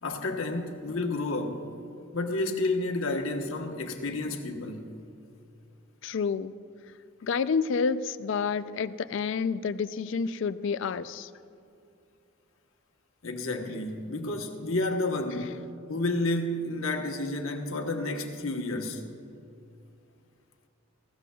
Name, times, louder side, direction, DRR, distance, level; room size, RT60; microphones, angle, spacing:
voice 1, 0.0-1.7 2.1-4.9 13.2-15.6 15.9-19.0, left 2 dB, 85° left, 1.1 m, -30 dB
voice 2, 6.0-6.5 7.2-11.3 15.3-15.4, left 5 dB, 65° left, 0.4 m, -29 dB
19.0 x 15.5 x 2.3 m
head